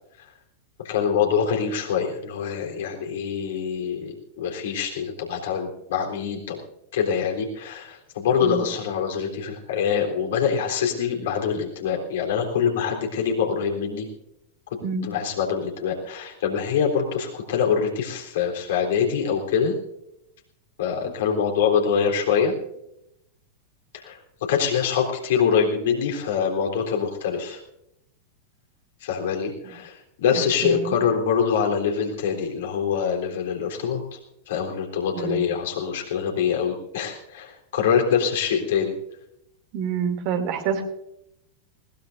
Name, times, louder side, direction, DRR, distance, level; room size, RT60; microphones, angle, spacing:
voice 1, 0.8-6.6 6.9-14.1 15.0-19.8 20.8-22.5 24.0-27.6 29.0-29.9 30.2-34.2 34.5-38.9, left 7 dB, 55° left, 1 dB, 3.6 m, -24 dB
voice 2, 30.3-31.0 35.1-35.4 39.7-40.8, right 6 dB, 45° right, 5 dB, 2.7 m, -27 dB
21.0 x 19.5 x 2.6 m, 0.81 s
figure-of-eight pair, 90°, 0 cm